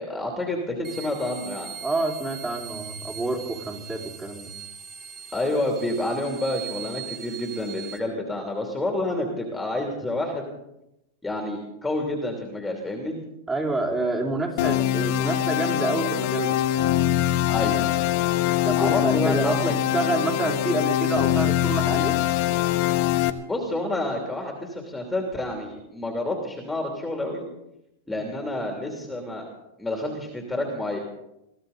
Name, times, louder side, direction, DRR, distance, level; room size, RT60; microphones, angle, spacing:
voice 1, 0.0-1.7 5.3-10.5 11.2-13.2 17.5-17.8 18.8-19.7 23.5-27.4 28.1-29.4 29.8-31.0, left 1 dB, 10° left, 1 dB, 2.9 m, -29 dB
sound 1, 0.8-8.0, right 8 dB, 35° right, 2.6 m, -40 dB
voice 2, 1.8-4.5 13.5-16.6 18.6-22.2, right 2 dB, 15° right, 0 dB, 3.8 m, -28 dB
sound 2, 14.6-23.3, left 13 dB, 60° left, 1.2 m, -23 dB
23.0 x 15.0 x 4.1 m, 0.86 s
hypercardioid pair, 120°, 0 cm